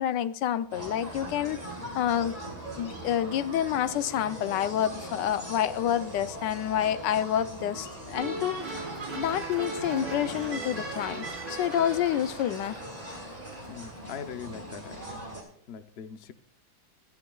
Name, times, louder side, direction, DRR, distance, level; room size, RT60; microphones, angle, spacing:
voice 1, 0.0-1.6 1.9-2.4 2.8-8.6 9.1-12.8, left 10 dB, 85° left, 1.3 m, -28 dB
sound 1, 0.7-15.4, right 1 dB, 20° right, 4.7 m, -41 dB
sound 2, 8.1-12.4, right 2 dB, 55° right, 4.4 m, -37 dB
Cheering / Applause, 8.6-14.3, right 1 dB, 80° right, 6.9 m, -47 dB
voice 2, 13.7-15.3 15.7-16.3, left 8 dB, 55° left, 0.7 m, -41 dB
24.5 x 9.9 x 2.4 m
omnidirectional pair, 1.9 m